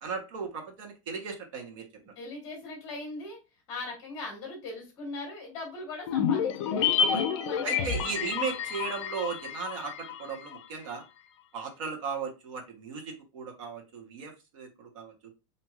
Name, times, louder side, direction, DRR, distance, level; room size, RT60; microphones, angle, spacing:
voice 1, 0.0-1.8 7.0-7.2 7.6-11.0 11.5-15.1, right 5 dB, 70° right, 2 dB, 1.1 m, -36 dB
voice 2, 2.0-3.4 3.7-8.1, left 2 dB, 25° left, -1 dB, 1.2 m, -40 dB
sound 1, 6.1-10.6 10.8-10.9, left 7 dB, 65° left, 0.4 m, -29 dB
3.0 x 2.7 x 2.3 m, 0.27 s
supercardioid pair, 170°, 17 cm